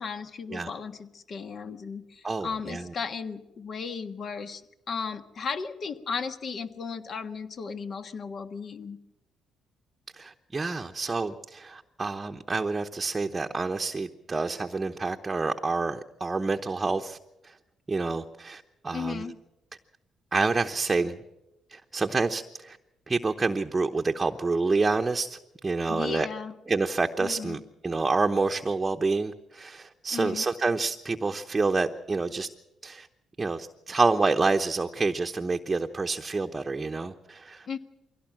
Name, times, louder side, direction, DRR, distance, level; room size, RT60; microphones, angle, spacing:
voice 1, 0.0-4.6 4.9-9.0 18.9-19.3 25.9-26.5 27.2-27.6 30.1-30.5 37.7-37.8, left 5 dB, 50° left, 8 dB, 1.5 m, -35 dB
voice 2, 2.2-2.9 10.2-17.2 17.4-17.5 17.9-19.2 20.3-21.2 21.7-22.8 23.1-25.4 25.6-26.3 26.7-32.5 32.8-33.1 33.4-37.7, right 3 dB, 25° right, 4 dB, 0.9 m, -28 dB
23.0 x 17.0 x 7.5 m, 0.94 s
cardioid pair, 90°, 0 cm